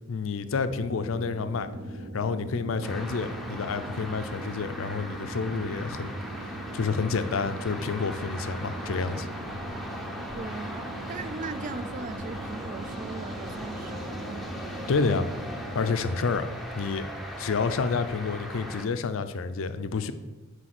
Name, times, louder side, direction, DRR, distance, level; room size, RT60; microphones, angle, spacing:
voice 1, 0.1-1.7 2.1-6.1 6.7-9.3 14.9-15.3 15.7-16.5 16.7-17.1 17.4-20.1, left 4 dB, 70° left, 11 dB, 0.5 m, -29 dB
sound 1, 0.7-15.8, right 1 dB, 55° right, 0.9 m, -40 dB
sound 2, 2.8-18.9, equal, ahead, 0.7 m, -39 dB
voice 2, 10.3-14.5, right 4 dB, 40° right, 13 dB, 0.3 m, -39 dB
6.2 x 4.9 x 6.0 m, 1.2 s
head